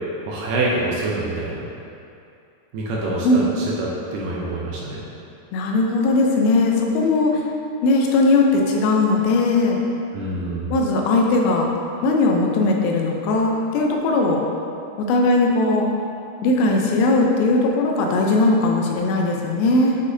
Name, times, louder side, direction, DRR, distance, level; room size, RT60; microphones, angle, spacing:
voice 1, 0.3-1.7 2.7-5.0 10.1-10.7, right 2 dB, 80° right, -4 dB, 2.0 m, -26 dB
voice 2, 5.5-7.4 7.8-9.8 10.7-11.7 12.0-14.4 15.0-15.9 16.4-20.0, left 2 dB, 80° left, 0 dB, 2.5 m, -19 dB
8.1 x 5.2 x 2.7 m, 2.6 s
omnidirectional pair, 4.6 m